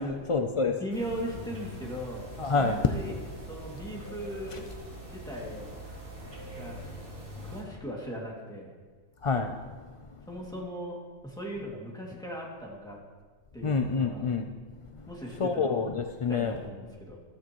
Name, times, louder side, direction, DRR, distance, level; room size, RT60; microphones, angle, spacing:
voice 1, 0.0-0.7 2.4-2.8 9.2-9.5 13.6-14.5 15.4-16.6, left 4 dB, 60° left, 5 dB, 0.3 m, -27 dB
voice 2, 0.7-2.3 2.5-3.2 3.5-4.7 5.1-5.7 6.6-6.8 7.4-8.7 10.3-13.0 13.5-14.4 15.1-15.8 16.3-17.2, equal, 5° left, -4 dB, 2.3 m, -38 dB
sound 1, 0.9-7.6, equal, 80° right, 3.0 m, -43 dB
14.5 x 13.0 x 3.1 m, 1.5 s
omnidirectional pair, 1.3 m